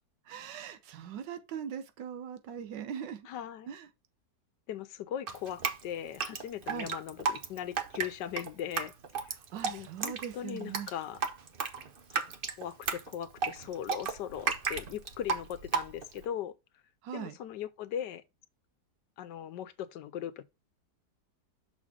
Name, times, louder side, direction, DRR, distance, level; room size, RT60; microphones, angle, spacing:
voice 1, 0.3-3.3 3.7-3.9 6.7-6.9 9.4-10.9 17.0-17.4, right 8 dB, 85° right, 1.4 m, -40 dB
voice 2, 3.3-3.7 4.7-9.3 9.7-11.2 12.1-12.3 12.6-16.5 17.1-18.2 19.2-20.4, left 10 dB, 85° left, 1.3 m, -39 dB
Drip, 5.3-16.2, right 5 dB, 45° right, 0.7 m, -34 dB
6.3 x 5.5 x 3.6 m
omnidirectional pair, 1.9 m